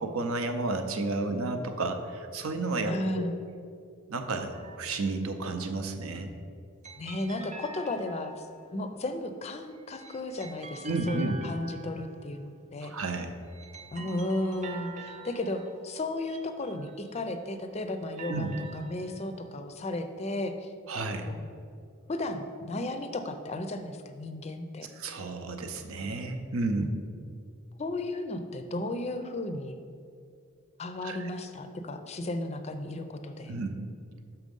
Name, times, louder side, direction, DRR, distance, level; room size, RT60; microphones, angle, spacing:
voice 1, 0.0-3.2 4.1-4.5 4.8-6.3 10.8-11.4 12.8-13.3 18.3-18.5 20.9-21.3 24.9-27.0 31.0-31.3 33.5-33.8, right 3 dB, 70° right, 6 dB, 0.7 m, -31 dB
voice 2, 2.9-3.3 7.0-8.5 8.7-12.9 13.9-18.5 18.7-20.7 21.3-21.5 22.1-24.9 26.8-26.9 27.8-29.7 30.8-33.5, left 1 dB, 30° left, 8 dB, 0.4 m, -34 dB
sound 1, 4.5-5.3 6.8-8.8 9.7-12.5 13.3-17.3 17.9-19.5, right 3 dB, 35° right, 0.5 m, -47 dB
6.3 x 5.8 x 5.3 m, 2.3 s
head